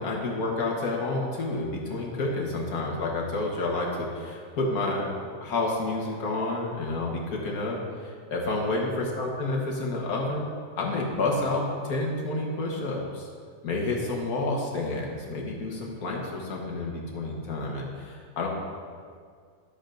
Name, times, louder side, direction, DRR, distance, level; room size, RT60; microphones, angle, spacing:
voice 1, 0.0-10.5 10.8-13.3 13.6-18.5, left 2 dB, 65° left, -2 dB, 1.7 m, -29 dB
12.0 x 7.0 x 2.6 m, 2.1 s
omnidirectional pair, 1.7 m